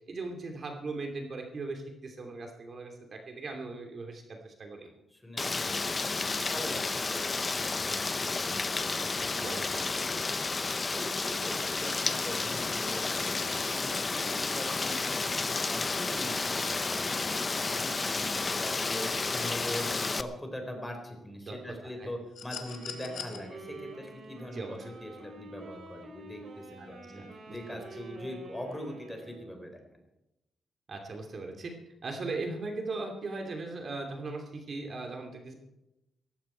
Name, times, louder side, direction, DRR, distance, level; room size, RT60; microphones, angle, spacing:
voice 1, 0.1-4.9 9.4-9.8 21.5-21.6 21.8-22.1 24.5-24.9 26.8-26.9 27.1-27.8 30.9-31.7 32.0-35.5, right 3 dB, 45° right, 3 dB, 2.7 m, -39 dB
voice 2, 5.1-5.8 6.2-10.1 10.9-15.2 15.7-30.0, left 1 dB, 10° left, 3 dB, 4.4 m, -42 dB
Rain, 5.4-20.2, left 3 dB, 30° left, 0.8 m, -31 dB
sound 1, 22.3-23.4 24.9-25.0, left 8 dB, 70° left, 2.1 m, -41 dB
Wind instrument woodwind instrument, 22.6-29.6, right 2 dB, 65° right, 5.1 m, -48 dB
17.5 x 15.0 x 4.5 m, 0.92 s
cardioid pair, 105°, 0 cm